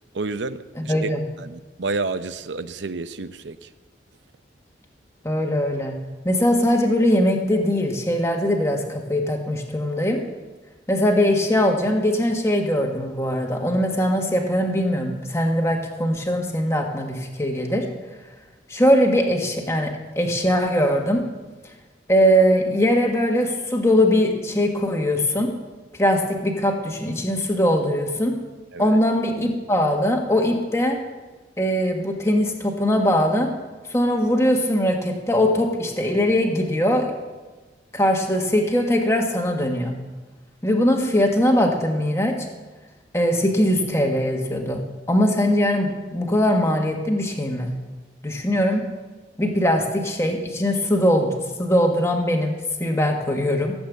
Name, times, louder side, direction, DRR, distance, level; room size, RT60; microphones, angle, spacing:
voice 1, 0.1-1.1 1.4-3.7 28.7-29.0, right 3 dB, 85° right, 12 dB, 0.7 m, -30 dB
voice 2, 0.7-1.3 5.2-6.0 6.2-10.2 10.9-17.8 18.7-21.2 22.1-25.5 26.0-28.3 28.8-31.0 31.6-33.5 33.9-37.1 37.9-40.0 40.6-42.5 43.1-47.7 48.2-48.8 49.4-53.7, equal, 15° left, 2 dB, 1.6 m, -21 dB
16.0 x 8.0 x 8.1 m, 1.2 s
head